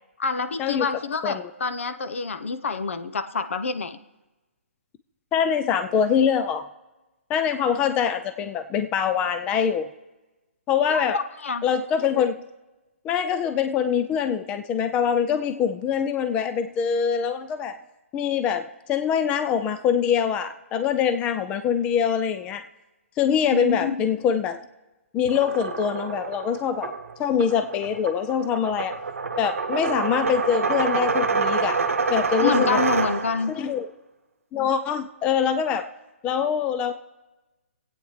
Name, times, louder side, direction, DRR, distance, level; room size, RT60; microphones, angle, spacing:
voice 1, 0.2-4.0 10.9-11.6 23.4-24.0 32.4-33.5, left 4 dB, 70° left, 11 dB, 0.9 m, -27 dB
voice 2, 5.3-6.6 7.3-9.9 10.7-11.2 11.6-12.4 13.0-17.7 18.1-22.6 23.2-24.6 25.1-26.9 27.2-28.9 29.4-31.8 32.1-32.8 33.5-33.9 34.5-35.9 36.2-36.9, left 7 dB, 15° left, 10 dB, 0.4 m, -24 dB
sound 1, 25.2-33.6, right 4 dB, 90° right, 1.0 m, -27 dB
24.0 x 8.7 x 3.2 m, 1.1 s
hypercardioid pair, 150°, 7 cm